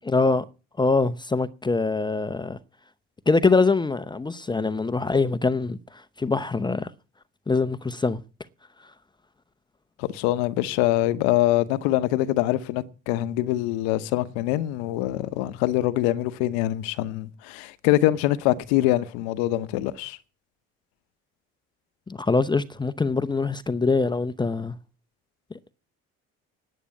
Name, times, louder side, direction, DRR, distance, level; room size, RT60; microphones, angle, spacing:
voice 1, 0.1-0.4 0.8-2.6 3.3-6.9 7.5-8.2 22.1-24.8, left 3 dB, 15° left, 0.8 m, -23 dB
voice 2, 10.0-20.2, left 15 dB, 90° left, 1.1 m, -24 dB
10.0 x 9.8 x 8.5 m
supercardioid pair, 95°, 30 cm